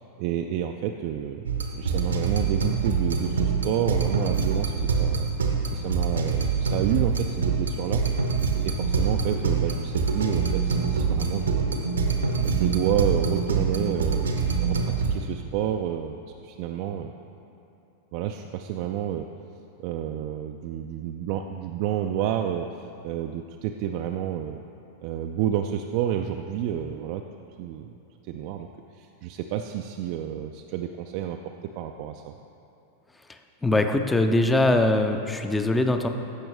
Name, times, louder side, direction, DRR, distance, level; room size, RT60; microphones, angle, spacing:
voice 1, 0.2-1.5 1.8-5.3 5.7-8.0 8.6-11.7 12.4-16.2 16.4-17.1 18.1-19.3 19.8-22.7 23.0-24.6 25.0-27.2 27.6-27.9 28.3-28.7 29.0-32.3, right 10 dB, 45° right, 4 dB, 0.3 m, -29 dB
sound 1, 1.5-15.2, right 5 dB, 70° right, 0.8 m, -25 dB
voice 2, 33.6-36.1, left 2 dB, 10° left, 6 dB, 0.5 m, -22 dB
14.5 x 6.1 x 3.4 m, 2.8 s
figure-of-eight pair, 90°, 0 cm